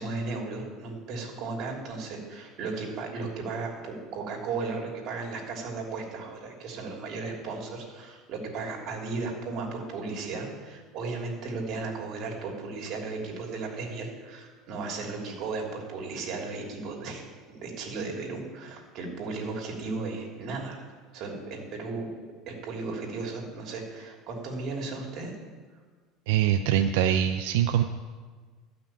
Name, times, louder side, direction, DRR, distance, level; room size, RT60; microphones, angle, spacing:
voice 1, 0.0-20.8 21.1-22.1 22.5-25.3, right 3 dB, 50° right, 0 dB, 3.1 m, -35 dB
voice 2, 26.3-27.8, right 10 dB, 85° right, 7 dB, 0.5 m, -23 dB
12.5 x 6.0 x 8.9 m, 1.5 s
supercardioid pair, 135°, 0 cm